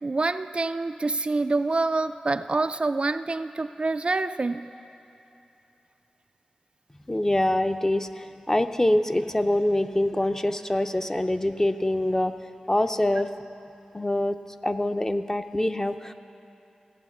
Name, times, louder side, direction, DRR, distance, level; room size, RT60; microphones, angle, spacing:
voice 1, 0.0-4.6, right 3 dB, 45° right, 10 dB, 0.3 m, -26 dB
voice 2, 7.1-12.3 12.7-13.3 13.9-14.4 14.6-16.1, left 1 dB, 20° left, 8 dB, 0.6 m, -24 dB
16.0 x 9.0 x 7.2 m, 3.0 s
wide cardioid pair, 65°, 2 cm